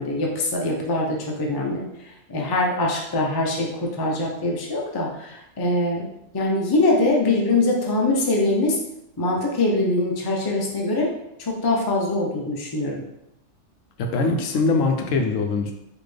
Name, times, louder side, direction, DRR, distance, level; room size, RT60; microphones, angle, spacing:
voice 1, 0.0-6.1 6.3-8.8 9.2-11.1 11.4-13.0, left 2 dB, 25° left, -1 dB, 0.5 m, -23 dB
voice 2, 14.0-15.7, left 3 dB, 80° left, 4 dB, 1.0 m, -22 dB
4.1 x 2.9 x 3.2 m, 0.82 s
omnidirectional pair, 1.3 m